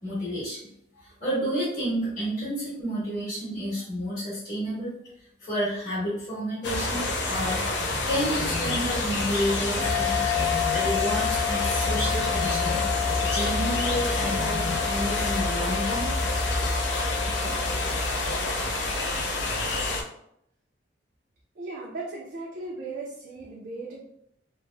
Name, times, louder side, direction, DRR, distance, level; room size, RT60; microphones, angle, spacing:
voice 1, 0.0-0.6 1.2-4.9 5.4-7.7 8.0-10.2 10.7-12.8 13.2-16.1, equal, 40° left, -11 dB, 1.3 m, -30 dB
sound 1, 6.6-20.0, left 2 dB, 65° left, 0.4 m, -27 dB
sound 2, 7.8-15.8, left 2 dB, 10° right, 0.6 m, -40 dB
sound 3, 9.8-18.8, left 15 dB, 15° left, 0.9 m, -32 dB
voice 2, 21.6-24.0, right 3 dB, 55° right, -3 dB, 0.4 m, -37 dB
3.1 x 2.0 x 2.2 m, 0.73 s
head